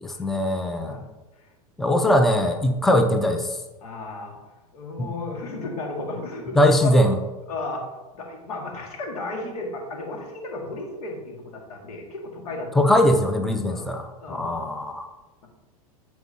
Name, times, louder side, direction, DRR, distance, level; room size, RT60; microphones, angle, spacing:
voice 1, 0.0-1.0 1.8-3.6 5.0-5.1 6.6-7.2 12.8-15.1, left 1 dB, ahead, 5 dB, 0.6 m, -21 dB
voice 2, 3.8-4.3 4.7-6.9 7.5-7.9 8.1-12.7 13.7-13.9 14.2-14.6, left 2 dB, 75° left, 1 dB, 1.9 m, -34 dB
13.0 x 4.6 x 2.8 m, 1.1 s
hypercardioid pair, 100°, 19 cm